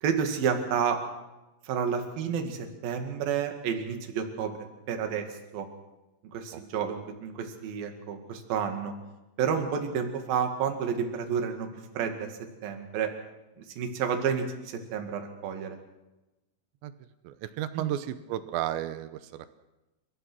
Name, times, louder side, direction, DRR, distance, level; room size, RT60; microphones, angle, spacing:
voice 1, 0.0-1.0 1.7-4.6 4.9-5.2 5.5-5.7 6.3-8.9 9.4-11.7 11.9-12.3 12.6-13.1 13.8-15.8 17.7-17.9, right 7 dB, 55° right, 5 dB, 3.4 m, -30 dB
voice 2, 17.2-19.6, right 12 dB, 80° right, 12 dB, 2.8 m, -33 dB
30.0 x 15.5 x 6.2 m, 1.0 s
omnidirectional pair, 5.9 m